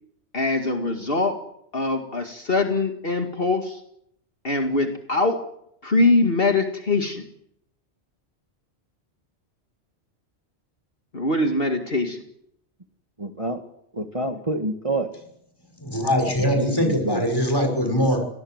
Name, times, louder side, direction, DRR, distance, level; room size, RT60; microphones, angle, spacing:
voice 1, 0.3-1.4 1.7-3.8 4.4-5.4 5.8-7.2 11.1-12.2, left 2 dB, 55° left, 5 dB, 2.4 m, -22 dB
voice 2, 13.2-13.6 13.9-15.1 16.4-17.3, right 2 dB, 30° right, 6 dB, 1.8 m, -28 dB
voice 3, 15.8-18.2, equal, 20° left, 4 dB, 6.3 m, -22 dB
28.5 x 19.5 x 8.0 m, 0.74 s
omnidirectional pair, 1.1 m